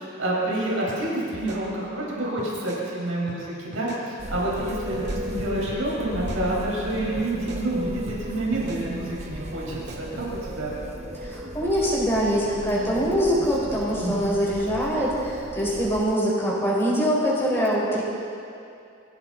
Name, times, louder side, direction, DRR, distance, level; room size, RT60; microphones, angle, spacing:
voice 1, 0.0-10.7 14.0-14.3, right 1 dB, 80° right, -5 dB, 4.7 m, -28 dB
sound 1, 0.9-1.0 1.3-2.1 2.4-2.8 3.3-3.4 3.7-4.0 4.9-5.8 6.1-6.9 7.2-7.6 8.1-8.2 8.5-8.8 9.7-10.3, right 1 dB, 55° right, 2.1 m, -41 dB
sound 2, 4.2-16.0, right 1 dB, 35° right, 0.8 m, -35 dB
voice 2, 11.2-18.0, equal, 10° left, -6 dB, 4.4 m, -24 dB
23.5 x 15.5 x 4.0 m, 2.5 s
head